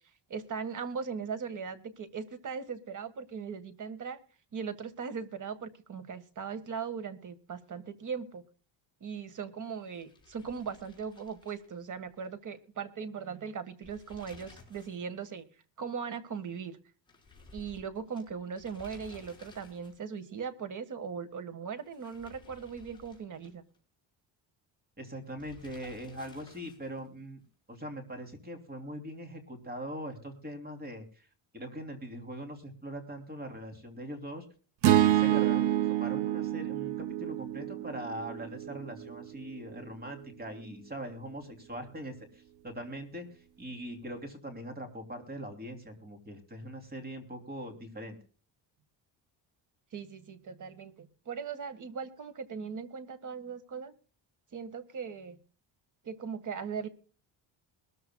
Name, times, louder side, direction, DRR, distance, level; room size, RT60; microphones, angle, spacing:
voice 1, 0.3-4.2 4.5-8.4 9.0-15.5 15.8-16.8 17.5-23.6 49.9-53.9 54.5-55.4 56.0-56.9, right 6 dB, 40° right, 11 dB, 1.7 m, -39 dB
sound 1, 9.8-12.3 12.6-12.7 13.7-15.1 15.4-15.5 17.1-20.2 21.8-23.8 25.4-27.1, left 3 dB, 10° left, 5.1 m, -55 dB
voice 2, 25.0-27.4 27.7-31.3 31.5-34.4 34.8-43.3 43.6-48.2, right 1 dB, 20° right, 6 dB, 3.2 m, -41 dB
sound 2, 34.8-39.1, right 12 dB, 70° right, 0.9 m, -27 dB
21.5 x 14.0 x 2.3 m, 0.39 s
cardioid pair, 145°, 45 cm